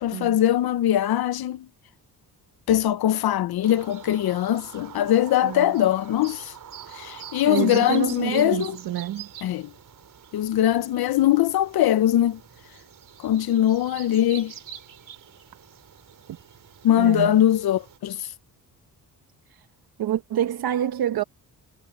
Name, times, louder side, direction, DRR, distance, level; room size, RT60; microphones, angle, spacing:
voice 1, 0.0-1.7 2.7-6.5 6.9-8.8 9.4-9.7 10.3-12.4 13.2-14.5 16.8-18.3, left 12 dB, 80° left, 0.8 m, -21 dB
sound 1, 3.6-18.0, right 9 dB, 60° right, 5.1 m, -45 dB
voice 2, 5.4-5.7 7.5-9.3 17.0-17.4 19.5-19.7 20.0-21.2, right 11 dB, 75° right, 1.1 m, -27 dB
wide cardioid pair, 145°, 37 cm